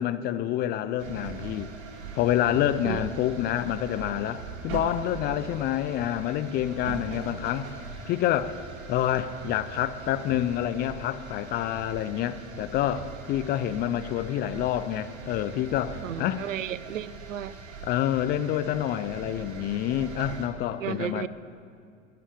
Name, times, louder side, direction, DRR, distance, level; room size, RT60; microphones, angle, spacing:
voice 1, 0.0-1.7 2.1-7.8 8.0-8.5 8.9-16.4 17.8-21.3, left 11 dB, 25° left, 11 dB, 0.4 m, -28 dB
sound 1, 1.0-20.5, right 5 dB, 55° right, 1.8 m, -41 dB
voice 2, 16.0-17.5 20.8-21.3, right 10 dB, 75° right, 18 dB, 0.5 m, -33 dB
12.5 x 9.7 x 8.5 m, 2.4 s
figure-of-eight pair, 80°, 39 cm